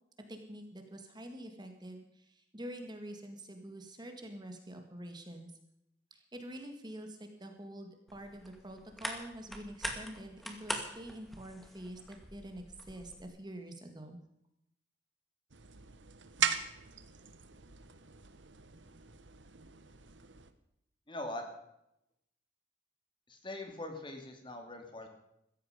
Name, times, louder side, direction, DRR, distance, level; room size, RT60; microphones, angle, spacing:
voice 1, 0.3-5.5 6.1-14.2, right 1 dB, 25° right, 5 dB, 2.0 m, -46 dB
sound 1, 8.1-13.3, equal, ahead, 2.1 m, -43 dB
sound 2, 15.5-20.5, right 8 dB, 85° right, 1.3 m, -39 dB
voice 2, 21.1-21.5 23.3-25.1, left 1 dB, 25° left, 4 dB, 2.7 m, -42 dB
16.0 x 14.5 x 5.2 m, 0.80 s
head